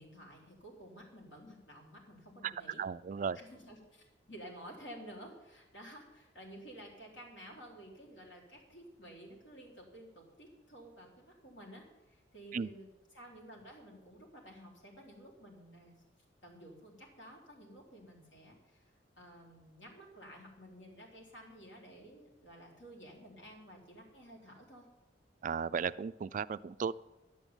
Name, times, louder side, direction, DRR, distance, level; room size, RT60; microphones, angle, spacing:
voice 1, 0.0-2.8 3.3-15.9 16.4-24.8, equal, 85° left, -1 dB, 4.0 m, -53 dB
voice 2, 2.8-3.4 12.5-12.7 25.4-26.9, right 6 dB, 45° right, 16 dB, 0.3 m, -35 dB
10.5 x 8.4 x 8.9 m, 1.0 s
head